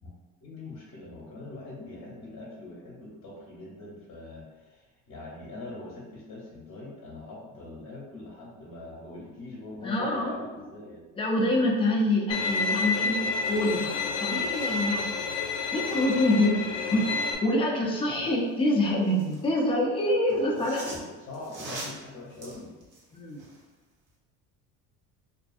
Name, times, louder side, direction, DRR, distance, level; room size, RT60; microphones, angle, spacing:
voice 1, 0.4-11.0 16.4-16.5 17.4-17.7 18.1-18.4 20.3-20.7 21.0-22.7, left 2 dB, 40° left, -5 dB, 0.8 m, -43 dB
voice 2, 9.8-10.3 11.2-15.1 15.7-16.6 16.9-17.1 17.4-20.9 23.1-23.4, left 1 dB, 15° left, -2 dB, 0.5 m, -26 dB
Bowed string instrument, 12.3-17.3, left 4 dB, 75° left, 0.6 m, -29 dB
sound 1, 13.7-13.8 14.0-16.3 18.4-19.5 20.3-23.7 24.1-24.2, right 1 dB, 50° right, 0.9 m, -45 dB
2.5 x 2.2 x 2.5 m, 1.2 s
supercardioid pair, 80°, 39 cm